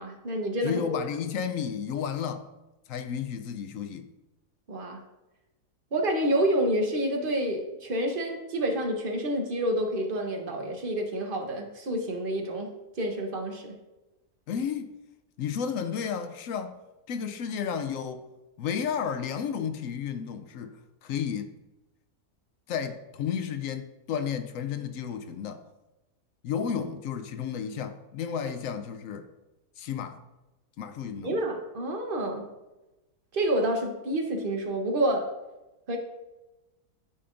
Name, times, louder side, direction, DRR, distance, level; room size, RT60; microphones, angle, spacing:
voice 1, 0.0-0.8 4.7-5.0 5.9-12.7 13.0-13.8 31.2-32.5 33.3-35.3 35.9-36.0, right 1 dB, 40° right, 1.0 m, -28 dB
voice 2, 0.6-2.5 2.9-4.1 14.5-14.9 15.4-16.8 17.1-18.2 18.6-21.6 22.7-25.6 26.4-29.3 29.8-30.2 30.8-31.4, left 7 dB, 70° left, 0.9 m, -32 dB
11.0 x 5.1 x 2.5 m
omnidirectional pair, 1.6 m